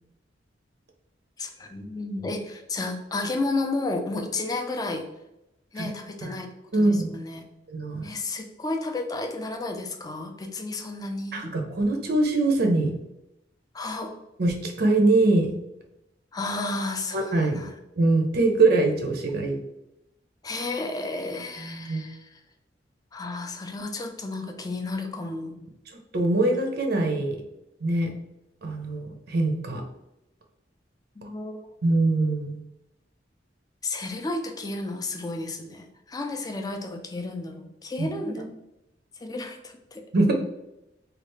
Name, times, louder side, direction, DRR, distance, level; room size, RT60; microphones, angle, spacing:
voice 1, 1.4-5.1 5.7-6.5 6.7-7.5 8.0-11.5 13.7-14.1 16.3-17.7 20.4-22.4 23.1-25.6 31.2-31.6 33.8-38.5 39.2-40.0, left 2 dB, 20° left, 4 dB, 0.4 m, -32 dB
voice 2, 6.7-7.1 7.7-8.0 11.3-12.9 14.4-15.5 17.1-17.6 18.0-19.6 21.6-22.1 26.1-27.4 27.8-28.1 28.6-29.8 31.8-32.6 38.0-38.4 40.1-40.3, right 2 dB, 55° right, 3 dB, 0.6 m, -23 dB
3.3 x 2.4 x 3.1 m, 0.89 s
head